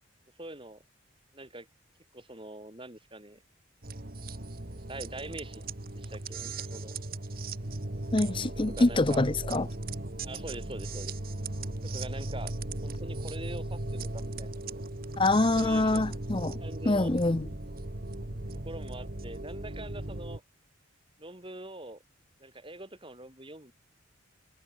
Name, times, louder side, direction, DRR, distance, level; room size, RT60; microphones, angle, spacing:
voice 1, 0.4-0.8 1.3-1.7 2.1-3.4 4.9-7.0 8.7-9.2 10.2-11.1 11.8-12.5 12.8-14.6 15.6-16.1 16.6-17.2 18.6-20.4 21.2-22.0 22.4-23.7, right 1 dB, 25° right, 5.3 m, -43 dB
sound 1, 3.8-20.4, right 2 dB, 45° right, 1.9 m, -37 dB
voice 2, 8.1-9.7 15.2-16.6 16.9-17.5, left 2 dB, 25° left, 0.7 m, -25 dB
head